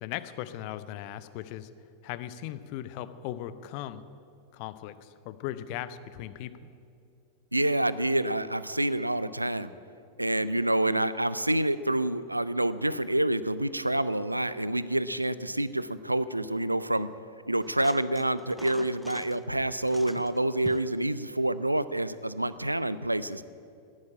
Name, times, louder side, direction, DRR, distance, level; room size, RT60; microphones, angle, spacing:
voice 1, 0.0-1.7 2.0-4.0 4.5-6.7, left 12 dB, 45° left, 13 dB, 0.7 m, -38 dB
voice 2, 7.5-9.7 10.2-17.1 17.5-23.4, right 1 dB, 85° right, 16 dB, 0.4 m, -27 dB
sound 1, 17.6-19.4 19.8-21.0 22.6-22.7, equal, ahead, 0.5 m, -46 dB
13.0 x 9.7 x 8.7 m, 2.5 s
figure-of-eight pair, 90°, 0 cm